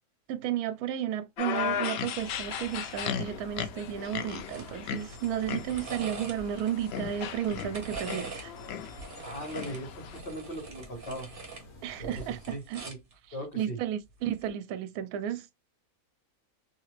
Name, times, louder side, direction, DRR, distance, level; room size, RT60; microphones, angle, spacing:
voice 1, 0.3-8.5 11.8-12.8 13.3-15.6, right 10 dB, 75° right, 1.0 m, -33 dB
sound 1, 1.4-10.2, left 8 dB, 75° left, 0.5 m, -37 dB
sound 2, 2.1-12.5, left 1 dB, 60° left, 1.4 m, -49 dB
sound 3, 4.5-4.7 5.0-6.7 7.3-8.5 8.8-11.6 12.0-13.1 14.3-14.5, right 4 dB, 40° right, 1.1 m, -43 dB
voice 2, 9.2-11.3 12.0-13.0 13.3-13.8, right 1 dB, 35° left, 1.9 m, -39 dB
3.0 x 2.8 x 3.1 m
omnidirectional pair, 1.6 m